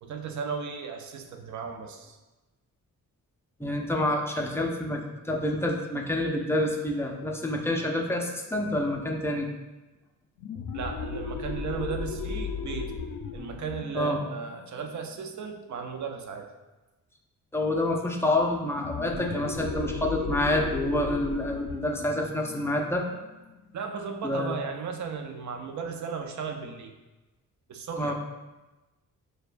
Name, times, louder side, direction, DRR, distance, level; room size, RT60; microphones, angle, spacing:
voice 1, 0.0-2.2 10.7-13.0 13.3-16.5 23.7-26.9 27.7-28.1, right 5 dB, 60° right, 5 dB, 0.5 m, -35 dB
voice 2, 3.6-9.5 13.9-14.2 17.5-23.0 24.2-24.6 28.0-28.1, left 1 dB, 10° left, 0 dB, 0.4 m, -28 dB
sound 1, 10.4-15.7 18.7-24.0, left 5 dB, 70° left, 0.5 m, -36 dB
6.5 x 2.2 x 2.5 m, 1.1 s
wide cardioid pair, 120°, 33 cm